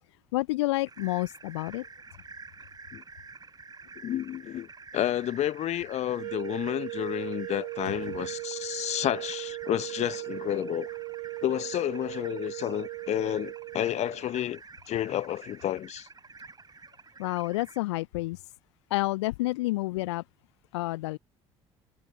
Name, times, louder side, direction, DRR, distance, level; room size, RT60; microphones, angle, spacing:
voice 1, 0.3-1.8 17.2-18.4 18.9-20.2 20.7-21.2, left 20 dB, 70° left, 0.5 m, -29 dB
sound 1, 0.9-17.8, right 4 dB, 25° right, 7.0 m, -49 dB
voice 2, 4.0-4.7 4.9-10.9 11.4-16.1, left 12 dB, 50° left, 0.9 m, -30 dB
sound 2, 6.1-14.3, right 32 dB, 60° right, 0.4 m, -38 dB
figure-of-eight pair, 50°, 15 cm